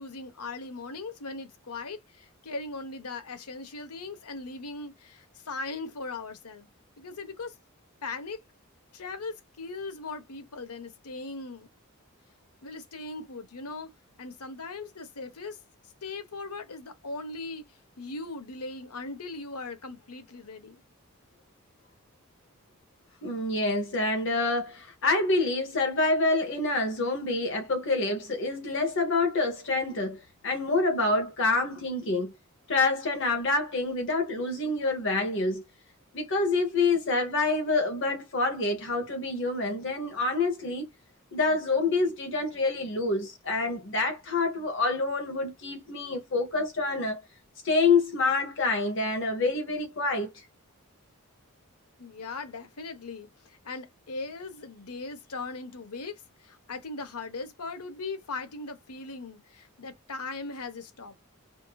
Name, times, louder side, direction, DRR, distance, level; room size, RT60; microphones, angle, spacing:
voice 1, 0.0-6.7 7.0-7.5 8.0-8.4 8.9-11.7 12.6-13.9 14.2-15.6 16.0-20.8 52.0-61.1, left 3 dB, 85° left, 1.0 m, -39 dB
voice 2, 23.2-32.3 32.7-35.6 36.1-40.9 41.3-47.2 47.6-50.5, left 3 dB, 55° left, 1.0 m, -27 dB
5.1 x 2.6 x 2.3 m
head